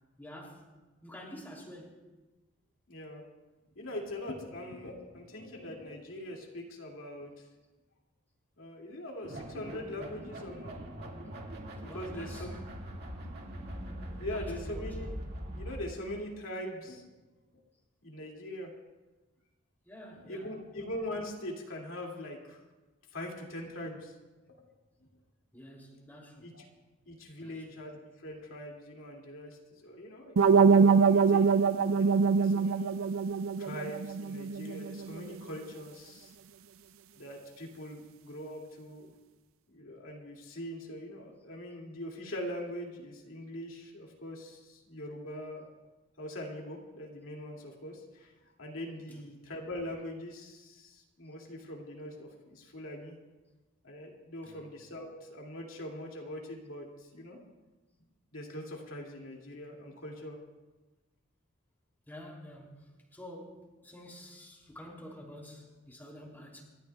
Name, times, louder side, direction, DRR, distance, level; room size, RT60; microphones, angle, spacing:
voice 1, 0.2-0.7 1.0-2.0 11.9-12.6 14.3-15.1 19.8-20.6 25.5-26.6 27.4-27.8 49.1-49.4 54.4-54.8 62.1-66.6, equal, 10° left, -2 dB, 2.8 m, -49 dB
voice 2, 2.9-3.2 3.7-7.5 8.6-10.8 11.1-11.4 11.8-12.6 14.1-15.2 15.5-17.0 18.0-18.7 20.2-22.6 23.1-24.1 26.4-26.7 27.1-33.0 33.6-36.4 37.1-39.1 39.7-45.7 46.2-48.3 48.6-53.2 53.8-57.4 58.3-60.4, left 1 dB, 90° left, -1 dB, 2.4 m, -42 dB
sound 1, 9.2-15.8, equal, 50° right, 2.0 m, -42 dB
sound 2, 30.4-35.3, right 5 dB, 85° right, 0.5 m, -24 dB
27.5 x 13.0 x 2.3 m, 1.1 s
head